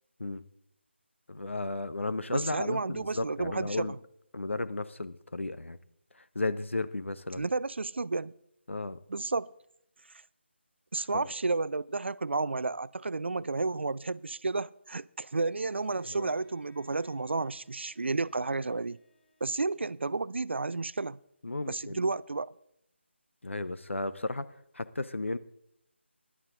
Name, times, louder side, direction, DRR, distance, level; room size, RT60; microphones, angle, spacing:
voice 1, 1.3-4.0 4.3-5.8 6.1-7.4 8.7-9.0 11.1-11.3 16.1-16.3 21.4-22.0 23.4-24.5 24.7-25.4, left 2 dB, 75° left, 0.7 m, -34 dB
voice 2, 2.3-4.0 7.4-8.3 9.1-9.5 10.9-19.0 19.4-21.2 21.7-22.5, right 3 dB, 65° right, 0.4 m, -32 dB
Bowed string instrument, 15.3-20.3, left 1 dB, 25° left, 3.3 m, -67 dB
14.0 x 11.0 x 3.7 m
figure-of-eight pair, 155°, 7 cm